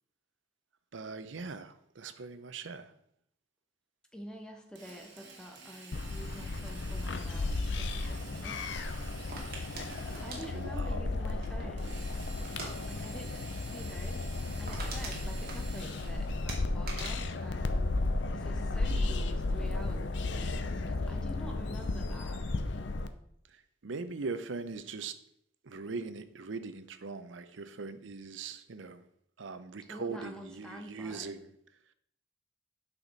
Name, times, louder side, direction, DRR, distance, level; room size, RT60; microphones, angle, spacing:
voice 1, 0.9-2.9 10.5-11.1 12.3-12.6 23.8-25.2 25.6-29.1 29.4-31.5, right 4 dB, 90° right, 0.7 m, -41 dB
voice 2, 4.1-8.7 10.2-12.2 12.9-13.3 13.7-14.3 14.6-17.8 18.3-22.4 29.9-31.4, equal, 5° left, 1.0 m, -48 dB
Drill, 4.7-10.8 11.8-16.4, right 3 dB, 70° right, 1.8 m, -50 dB
sound 1, 5.9-23.1, left 2 dB, 75° left, 0.6 m, -34 dB
sound 2, 9.3-11.8 12.4-12.7 13.0-13.3 13.5-13.6 14.0-14.1 14.4-16.1 16.5-18.5 18.8-19.2, right 3 dB, 50° right, 2.1 m, -44 dB
9.1 x 5.8 x 4.0 m
head